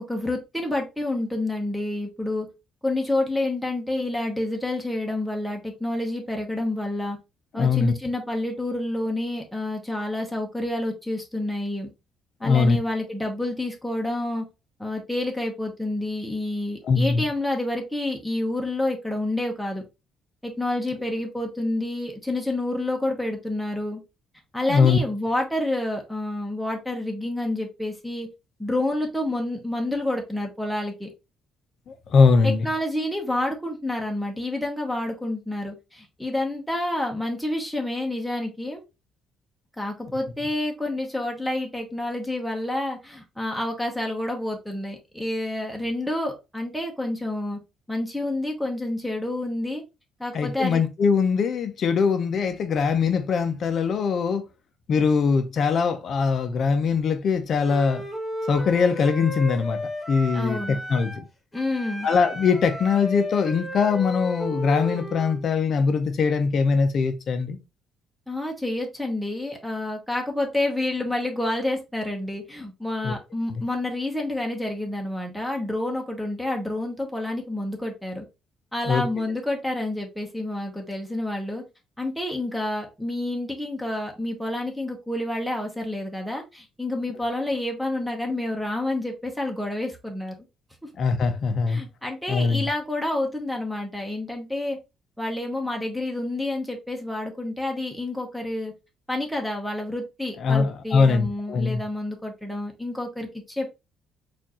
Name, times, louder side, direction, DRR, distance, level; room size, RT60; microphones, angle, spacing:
voice 1, 0.0-2.5 2.8-7.2 7.5-11.9 12.4-14.4 14.8-19.8 20.4-24.0 24.5-28.3 28.6-31.1 32.4-38.8 39.8-47.6 47.9-49.8 50.2-50.8 60.3-60.8 61.5-62.1 68.3-78.2 78.7-81.6 82.0-90.3 91.7-94.8 95.2-98.7 99.1-103.3 103.6-103.7, left 1 dB, ahead, 0.9 m, -28 dB
voice 2, 7.6-7.9 12.4-12.8 16.9-17.2 24.7-25.0 32.1-32.6 50.3-54.4 54.9-58.0 58.5-59.8 60.1-61.2 62.0-67.6 73.0-73.1 78.9-79.0 91.0-91.8 92.3-92.7 100.4-101.8, left 5 dB, 50° left, 0.6 m, -21 dB
Wind instrument woodwind instrument, 57.6-61.3 61.5-65.4, left 1 dB, 15° left, 1.3 m, -33 dB
4.4 x 2.6 x 2.9 m
cardioid pair, 120°, 0 cm